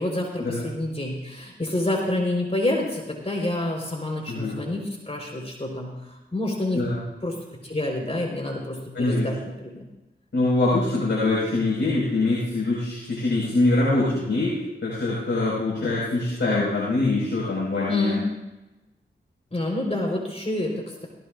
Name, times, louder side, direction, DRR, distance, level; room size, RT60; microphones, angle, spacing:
voice 1, 0.0-6.8 7.2-7.4 7.6-9.8 17.9-18.2 19.5-21.1, left 1 dB, 30° left, 0 dB, 4.3 m, -28 dB
voice 2, 8.9-9.3 10.3-18.1, left 2 dB, 80° left, -8 dB, 5.3 m, -24 dB
18.5 x 17.5 x 2.5 m, 1.0 s
cardioid pair, 45°, 19 cm